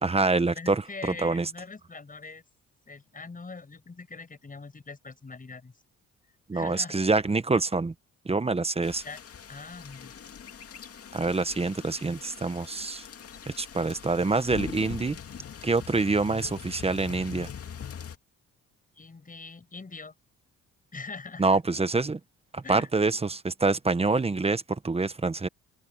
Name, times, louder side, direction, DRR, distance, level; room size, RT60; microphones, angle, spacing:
voice 1, 0.0-1.5 6.5-7.9 8.2-9.0 11.1-13.0 13.6-15.2 15.6-17.5 21.4-22.2 22.5-25.5, right 3 dB, 20° right, 1.1 m, -26 dB
voice 2, 0.5-2.4 2.9-5.7 6.5-7.0 9.0-9.2 9.5-10.2 19.0-20.1 20.9-21.6 22.6-22.9, left 4 dB, 25° left, 7.6 m, -42 dB
sound 1, 8.8-18.2, left 7 dB, 50° left, 2.5 m, -42 dB
cardioid pair, 90°, 30 cm